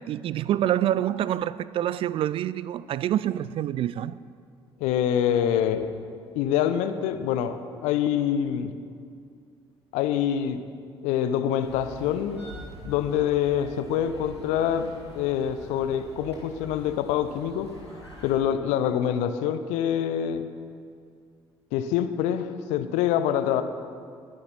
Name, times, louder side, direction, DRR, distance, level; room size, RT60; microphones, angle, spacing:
voice 1, 0.0-4.2, right 11 dB, 45° right, 0.4 m, -26 dB
voice 2, 4.8-5.9 6.3-8.7 9.9-10.6 11.0-12.5 12.8-14.9 15.1-17.7 18.2-20.5 21.7-23.6, left 9 dB, 60° left, 0.8 m, -25 dB
sound 1, 11.6-18.3, equal, 90° left, 1.7 m, -45 dB
21.0 x 9.9 x 4.2 m
figure-of-eight pair, 50°, 14 cm